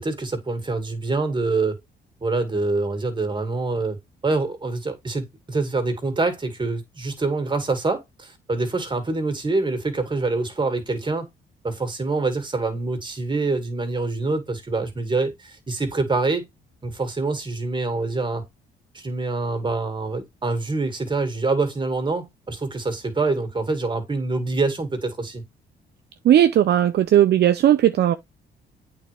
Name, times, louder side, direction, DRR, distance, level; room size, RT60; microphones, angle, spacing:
voice 1, 0.0-1.8 2.2-4.0 4.2-11.3 11.6-16.5 16.8-18.5 18.9-25.4, right 3 dB, 25° right, 2.2 m, -25 dB
voice 2, 26.2-28.2, right 11 dB, 60° right, 0.5 m, -17 dB
8.3 x 4.2 x 3.4 m
cardioid pair, 90°, 20 cm